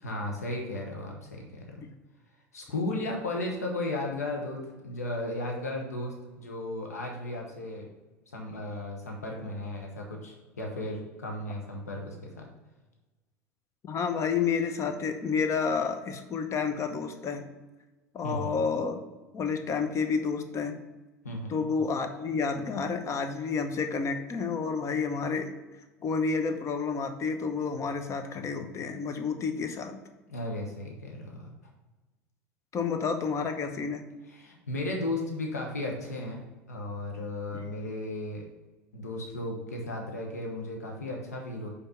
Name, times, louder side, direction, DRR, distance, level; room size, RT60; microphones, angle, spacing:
voice 1, 0.0-1.8 2.5-7.9 8.3-12.4 18.2-18.6 21.2-21.7 30.3-31.5 34.3-36.4 36.7-38.5 38.9-41.7, left 2 dB, 90° left, 0 dB, 1.0 m, -35 dB
voice 2, 13.8-17.5 18.1-19.0 19.3-20.8 21.5-25.5 26.0-30.0 32.7-34.1 37.5-37.7, left 5 dB, 35° left, 7 dB, 0.9 m, -30 dB
5.5 x 4.1 x 5.6 m, 1.2 s
hypercardioid pair, 80°, 8 cm